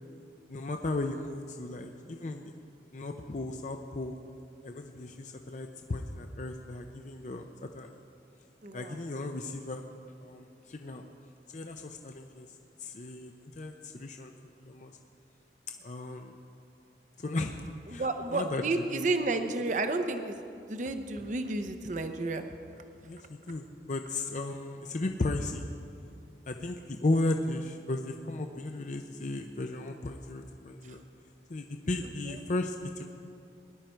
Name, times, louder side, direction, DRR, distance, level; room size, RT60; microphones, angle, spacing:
voice 1, 0.5-2.5 2.9-4.1 4.6-7.9 8.7-9.8 10.2-11.0 11.5-12.5 12.8-14.3 14.6-14.9 15.8-16.4 17.2-17.6 17.9-19.0 23.0-25.7 26.5-31.0 31.5-33.0, left 2 dB, 45° left, 4 dB, 0.5 m, -35 dB
voice 2, 8.6-9.0 17.9-20.4 20.7-22.4, right 2 dB, 45° right, 7 dB, 0.7 m, -31 dB
19.5 x 10.5 x 4.5 m, 2.5 s
head